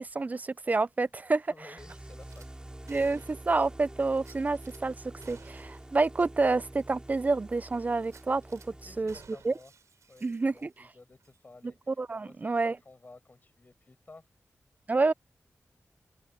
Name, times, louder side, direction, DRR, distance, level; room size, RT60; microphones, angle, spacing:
voice 1, 0.0-1.5 2.9-3.2 3.5-4.9 5.3-8.6 9.0-9.1 9.4-9.5 10.2-10.7 11.9-12.8 14.9-15.1, right 3 dB, 30° right, 0.4 m, -28 dB
voice 2, 1.5-3.6 8.8-9.7 10.1-11.8 12.2-12.5 12.8-14.2, left 3 dB, 35° left, 7.5 m, -54 dB
sound 1, 1.8-9.4, right 1 dB, 15° right, 3.9 m, -47 dB
Gunshot gunfire / Glass, 2.2-2.5 2.9-3.6 4.2-4.8 5.2-5.9 6.2-6.3 6.7-6.8 8.0-8.7 9.1-10.9 11.2-11.4, right 5 dB, 85° right, 3.6 m, -55 dB
open air
wide cardioid pair, 100°, 5 cm